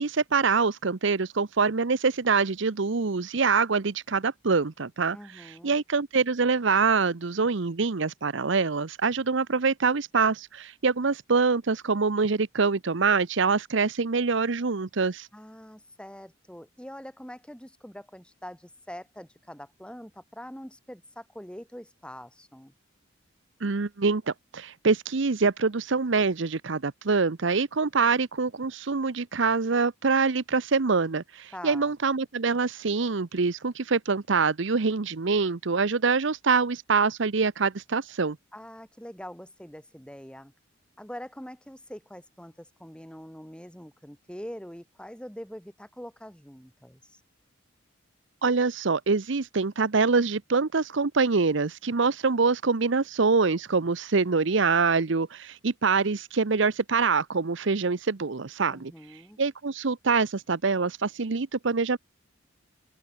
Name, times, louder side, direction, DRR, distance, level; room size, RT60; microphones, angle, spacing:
voice 1, 0.0-15.3 23.6-38.4 48.4-58.9 59.4-62.0, right 4 dB, 65° right, 0.8 m, -25 dB
voice 2, 5.1-5.8 15.3-22.7 31.5-31.9 38.5-40.5 41.0-47.2 58.7-59.4, equal, 5° left, 3.4 m, -44 dB
open air
head